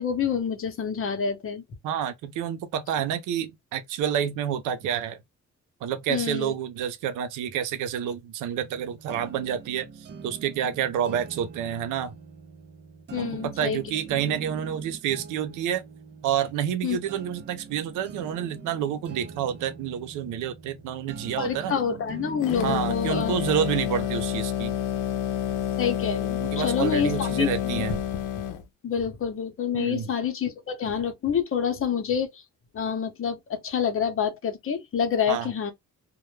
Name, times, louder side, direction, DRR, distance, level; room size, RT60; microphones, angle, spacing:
voice 1, 0.0-1.6 6.1-6.5 13.1-13.8 16.8-17.0 21.4-23.5 25.8-27.9 28.8-32.4 32.7-35.7, left 7 dB, 45° left, 0.8 m, -27 dB
voice 2, 1.8-5.2 5.8-12.1 13.2-15.8 16.2-21.7 22.6-24.8 26.4-28.0 29.7-30.1 35.3-35.5, right 9 dB, 85° right, 0.5 m, -29 dB
sound 1, 8.6-22.9, right 5 dB, 35° right, 0.5 m, -43 dB
sound 2, 22.4-28.6, left 10 dB, 80° left, 0.6 m, -29 dB
2.1 x 2.0 x 3.1 m
cardioid pair, 90°, 30 cm